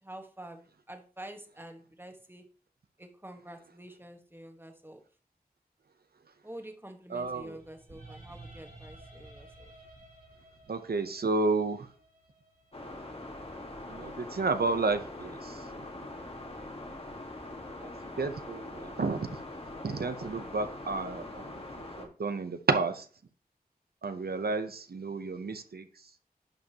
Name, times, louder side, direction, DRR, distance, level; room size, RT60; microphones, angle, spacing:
voice 1, 0.0-2.4 3.0-5.0 6.4-9.7, right 1 dB, 15° right, 4 dB, 1.2 m, -47 dB
voice 2, 7.1-7.6 10.7-11.9 13.9-15.6 17.8-17.9 18.2-19.3 19.8-23.1 24.0-25.9, right 3 dB, 80° right, 9 dB, 0.6 m, -31 dB
sound 1, 7.2-15.3, right 2 dB, 65° right, 2.7 m, -54 dB
sound 2, 12.7-22.1, left 1 dB, 40° left, 1.5 m, -43 dB
10.5 x 5.2 x 2.8 m, 0.43 s
wide cardioid pair, 65°, 16 cm